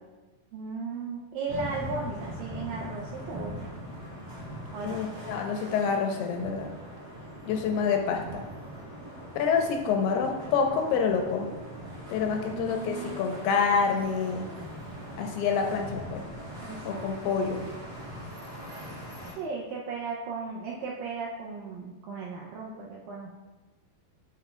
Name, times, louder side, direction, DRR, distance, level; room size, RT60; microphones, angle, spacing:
voice 1, 0.5-3.5 4.7-5.0 9.1-9.2 12.3-13.2 16.6-17.4 19.4-23.3, right 4 dB, 80° right, -3 dB, 2.0 m, -36 dB
sound 1, 1.5-19.3, equal, 40° right, 2.1 m, -41 dB
voice 2, 4.8-6.7 7.5-8.4 9.4-11.5 12.1-14.5 15.2-16.2 16.9-17.7, left 6 dB, 85° left, 3 dB, 2.6 m, -27 dB
8.3 x 7.2 x 2.3 m, 1.2 s
omnidirectional pair, 4.7 m